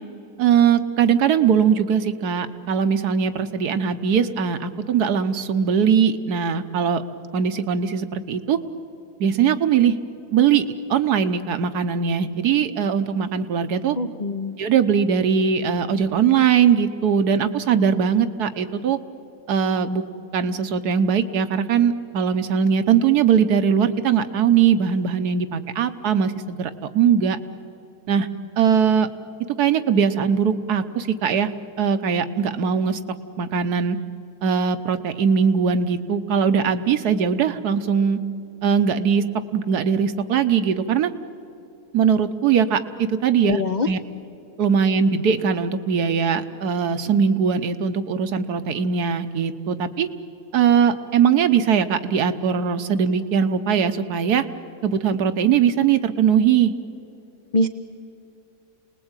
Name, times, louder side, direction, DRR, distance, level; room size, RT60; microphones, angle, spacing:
voice 1, 0.4-7.0 7.3-8.6 9.2-10.0 10.3-14.0 14.6-19.0 19.5-20.0 20.3-27.4 28.1-28.3 28.6-29.1 29.6-31.5 31.8-33.0 33.4-34.0 34.4-38.2 38.6-39.2 39.5-41.1 41.9-44.0 44.6-50.1 50.5-54.5 54.8-56.7, right 7 dB, 85° right, 9 dB, 1.5 m, -20 dB
voice 2, 14.0-14.6 43.5-43.9 57.5-57.7, left 2 dB, 45° left, 9 dB, 0.6 m, -23 dB
28.0 x 20.0 x 9.0 m, 2.9 s
omnidirectional pair, 1.6 m